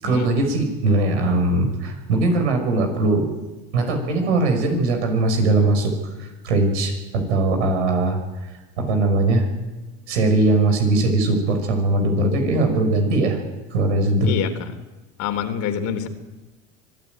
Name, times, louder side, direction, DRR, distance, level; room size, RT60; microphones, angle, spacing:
voice 1, 0.0-3.3 3.7-5.9 6.2-8.5 8.8-9.5 10.1-13.4 13.7-14.3, right 2 dB, 85° right, 5 dB, 5.7 m, -20 dB
voice 2, 14.2-14.7 15.2-16.1, left 8 dB, 60° left, 8 dB, 3.2 m, -26 dB
25.0 x 12.5 x 9.2 m, 1.2 s
hypercardioid pair, 85°, 33 cm